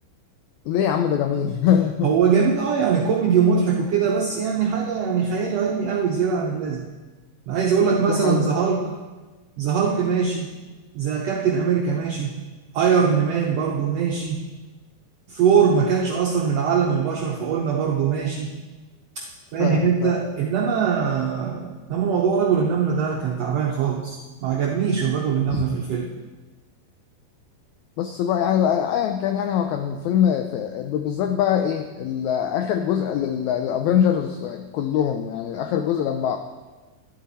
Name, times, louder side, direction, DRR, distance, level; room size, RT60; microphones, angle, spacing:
voice 1, 0.6-2.1 8.1-8.5 19.6-20.1 25.5-25.7 28.0-36.4, left 9 dB, 85° left, 7 dB, 1.6 m, -23 dB
voice 2, 2.0-6.9 7.5-8.9 9.6-10.5 10.9-12.3 12.7-14.4 15.3-18.5 19.2-19.3 19.5-26.1, right 6 dB, 80° right, 0 dB, 1.4 m, -22 dB
11.5 x 11.5 x 4.2 m, 1.3 s
omnidirectional pair, 4.0 m